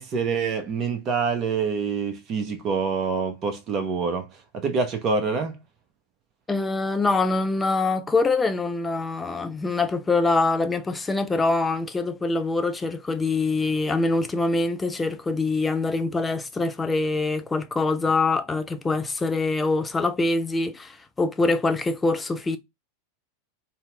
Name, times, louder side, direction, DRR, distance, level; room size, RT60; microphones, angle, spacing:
voice 1, 0.0-5.6, right 5 dB, 35° right, 0.8 m, -26 dB
voice 2, 6.5-22.6, left 3 dB, 15° left, 0.4 m, -24 dB
2.8 x 2.0 x 3.3 m
figure-of-eight pair, 85°, 0 cm